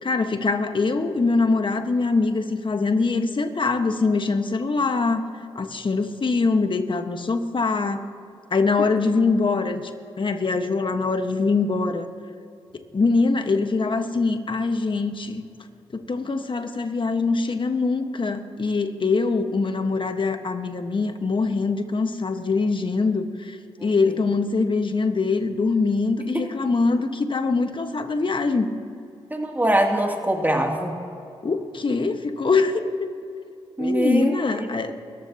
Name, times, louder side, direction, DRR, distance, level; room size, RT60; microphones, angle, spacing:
voice 1, 0.0-5.2 5.5-8.1 8.5-9.9 10.2-12.1 12.7-15.4 15.9-28.7 31.4-33.0 33.8-35.0, left 3 dB, 45° left, 7 dB, 1.4 m, -23 dB
voice 2, 29.3-31.0 33.8-34.7, right 1 dB, 15° right, 1 dB, 2.7 m, -23 dB
29.0 x 14.5 x 2.9 m, 2.6 s
supercardioid pair, 40°, 12 cm